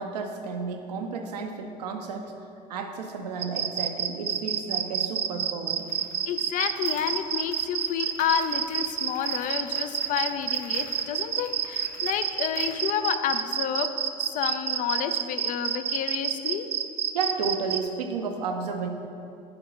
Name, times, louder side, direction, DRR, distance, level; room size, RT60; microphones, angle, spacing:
voice 1, 0.0-2.3 2.7-5.8 17.1-18.9, right 4 dB, 70° right, 4 dB, 0.7 m, -32 dB
sound 1, 3.4-17.8, right 9 dB, 30° right, 0.4 m, -28 dB
sound 2, 5.8-12.9, left 3 dB, 60° left, 1.4 m, -49 dB
voice 2, 6.3-13.9 14.2-16.7, left 9 dB, 40° left, 10 dB, 0.5 m, -30 dB
6.5 x 4.4 x 6.0 m, 2.6 s
figure-of-eight pair, 70°, 21 cm